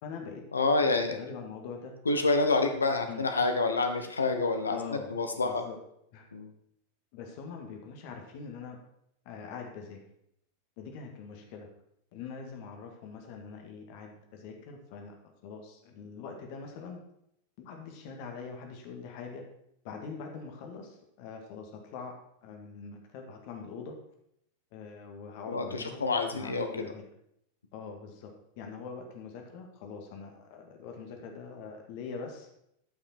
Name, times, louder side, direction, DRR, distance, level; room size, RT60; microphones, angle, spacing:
voice 1, 0.0-0.5 0.9-1.9 3.1-3.2 4.7-5.1 5.4-5.8 6.1-6.3 7.1-8.8 9.3-10.0 10.8-11.7 12.1-17.0 17.6-19.4 19.8-22.2 22.4-23.9 24.7-27.0 27.7-32.5, left 5 dB, 45° left, 3 dB, 2.1 m, -43 dB
voice 2, 0.5-1.2 2.1-4.8 5.1-5.6 6.3-6.5 25.5-26.7, left 3 dB, 75° left, 6 dB, 1.1 m, -27 dB
13.0 x 5.9 x 4.5 m, 0.75 s
figure-of-eight pair, 90°, 0 cm